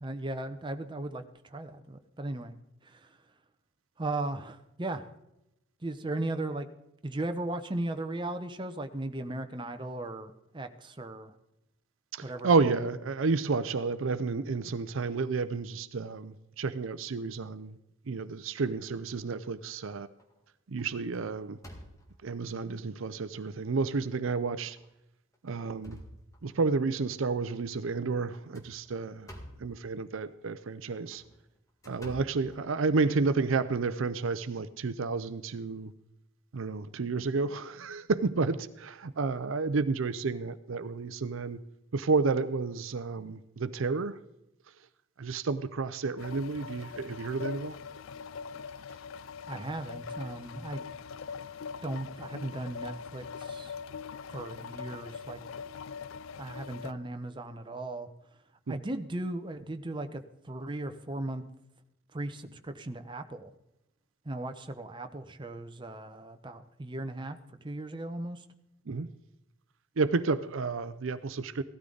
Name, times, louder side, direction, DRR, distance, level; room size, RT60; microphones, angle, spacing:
voice 1, 0.0-2.5 2.9-3.0 4.0-5.1 5.8-6.7 7.0-11.3 12.2-12.7 49.5-50.9 51.8-53.7 54.3-55.4 56.4-58.1 58.7-60.2 60.4-61.4 62.1-63.5 64.3-67.4 67.6-68.4, right 2 dB, 20° right, 7 dB, 0.8 m, -37 dB
voice 2, 12.1-17.7 18.1-20.1 20.7-21.6 22.2-24.8 25.4-26.0 26.4-29.3 29.6-31.2 31.9-35.9 36.5-41.6 41.9-44.2 45.2-47.8 58.7-58.8 68.9-69.1 70.0-71.6, right 4 dB, 65° right, 14 dB, 0.6 m, -31 dB
sound 1, 19.2-19.7 20.2-20.4 20.8-22.4 23.1-23.2 23.6-23.7 24.6-24.9 25.3-26.8 28.3-29.8 30.9-33.1, equal, 15° left, 1.9 m, -50 dB
sound 2, 46.2-56.9, left 6 dB, 65° left, 0.4 m, -42 dB
16.5 x 13.0 x 3.9 m, 0.87 s
head